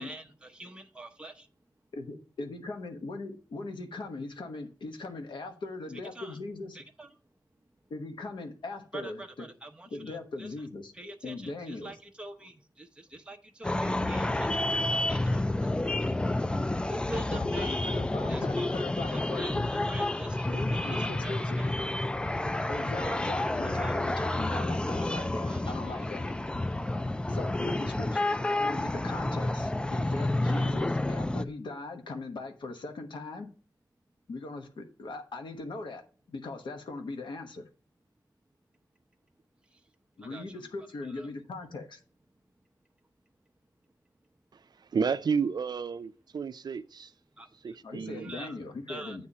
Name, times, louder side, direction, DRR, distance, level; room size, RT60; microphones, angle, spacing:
voice 1, 0.0-1.5 6.1-6.4 6.7-7.2 8.9-10.7 10.9-15.5 16.8-17.9 18.3-18.7 19.1-21.9 23.0-24.4 24.9-25.9 39.7-39.9 40.2-40.6 41.1-41.3 47.4-48.6 48.9-49.3, right 1 dB, 15° right, 0.8 m, -45 dB
voice 2, 1.9-6.8 7.9-9.5 9.9-10.9 11.2-11.9 17.1-19.7 20.5-21.6 22.7-26.3 27.3-33.5 34.3-36.0 36.3-37.6 40.2-42.0 47.8-49.3, left 3 dB, 85° left, 1.0 m, -39 dB
sound 1, 13.6-31.4, left 1 dB, 10° left, 0.3 m, -30 dB
voice 3, 44.9-47.1 47.6-48.3, right 6 dB, 60° right, 0.5 m, -31 dB
8.4 x 4.3 x 4.8 m
wide cardioid pair, 130°, 8 cm